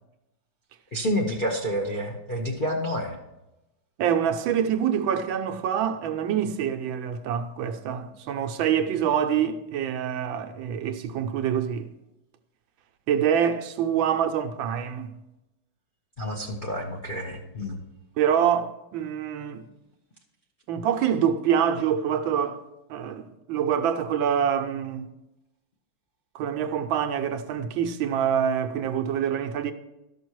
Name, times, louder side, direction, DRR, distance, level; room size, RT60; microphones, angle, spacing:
voice 1, 0.9-3.2 16.2-17.8, equal, 45° left, 0.6 m, -29 dB
voice 2, 4.0-11.9 13.1-15.2 18.2-19.6 20.7-22.6 22.9-25.1 26.3-29.7, right 8 dB, 75° right, 1.4 m, -26 dB
12.5 x 6.0 x 4.6 m
omnidirectional pair, 2.2 m